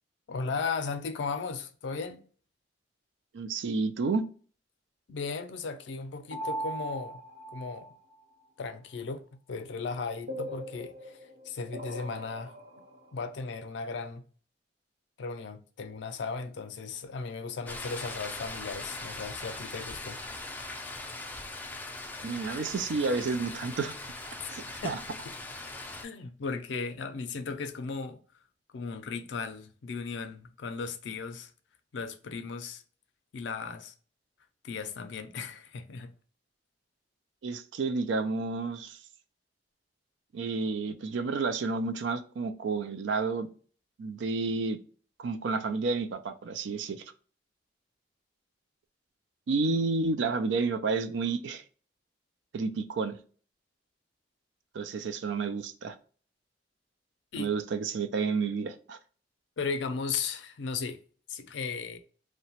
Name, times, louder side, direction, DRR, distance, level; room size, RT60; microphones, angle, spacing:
voice 1, 0.3-2.2 5.1-7.2 7.5-7.9 8.6-11.2 11.4-12.6 13.1-14.2 15.2-20.2 24.8-25.0 26.0-28.2 28.7-31.5 31.9-32.8 33.3-33.9 34.6-36.1 57.3-57.5 59.6-61.0 61.3-62.0, left 4 dB, 80° left, 0.4 m, -36 dB
voice 2, 3.3-4.3 22.2-23.9 24.5-25.0 37.4-39.0 40.3-43.5 44.0-44.8 45.2-47.0 49.5-51.6 52.5-53.2 54.7-56.0 57.3-59.0, right 4 dB, 90° right, 0.4 m, -30 dB
sound 1, 6.3-8.1 10.3-13.0, right 1 dB, 60° right, 0.7 m, -39 dB
sound 2, 17.7-26.0, left 2 dB, 10° left, 0.3 m, -40 dB
2.8 x 2.1 x 2.8 m
head